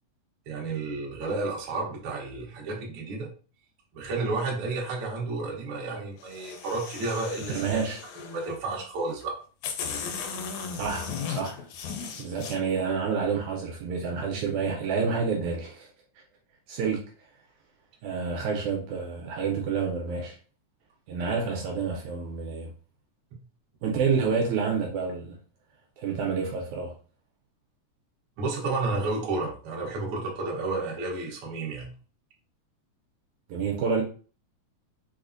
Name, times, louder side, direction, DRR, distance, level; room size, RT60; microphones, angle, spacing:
voice 1, 0.5-3.3 3.9-7.8 8.2-9.3 28.4-31.9, right 3 dB, 65° right, 1.4 m, -31 dB
sound 1, 6.2-8.6 9.2-9.3 9.6-12.6, left 6 dB, 80° left, 1.5 m, -36 dB
voice 2, 7.5-8.0 10.8-11.7 12.2-15.9 16.7-17.0 18.0-20.4 21.1-22.7 23.8-25.3 26.0-26.9 33.5-34.0, right 5 dB, 80° right, 1.9 m, -28 dB
4.8 x 2.1 x 2.5 m
omnidirectional pair, 3.5 m